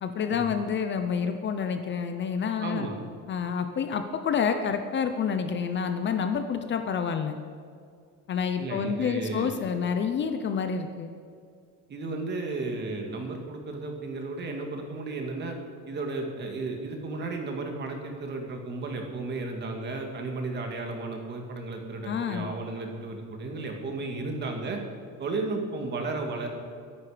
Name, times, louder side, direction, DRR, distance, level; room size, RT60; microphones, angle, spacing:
voice 1, 0.0-2.9 3.3-7.4 8.3-11.1 22.0-22.5, left 6 dB, 35° left, 7 dB, 0.8 m, -28 dB
voice 2, 2.6-3.0 8.6-9.5 11.9-15.6 15.8-24.8 25.2-26.5, right 3 dB, 30° right, 3 dB, 2.1 m, -34 dB
22.5 x 11.0 x 5.1 m, 2.3 s
cardioid pair, 180°, 33 cm